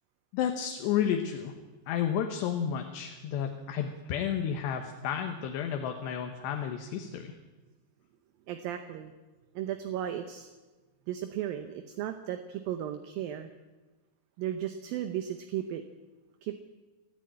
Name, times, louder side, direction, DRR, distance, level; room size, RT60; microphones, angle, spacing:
voice 1, 0.3-1.5 1.9-7.3, left 8 dB, 80° left, 4 dB, 3.2 m, -31 dB
voice 2, 8.5-9.1 9.6-10.5 11.1-13.5 14.4-15.8 16.4-16.6, right 11 dB, 75° right, 8 dB, 2.3 m, -35 dB
30.0 x 10.0 x 8.8 m, 1.2 s
omnidirectional pair, 5.0 m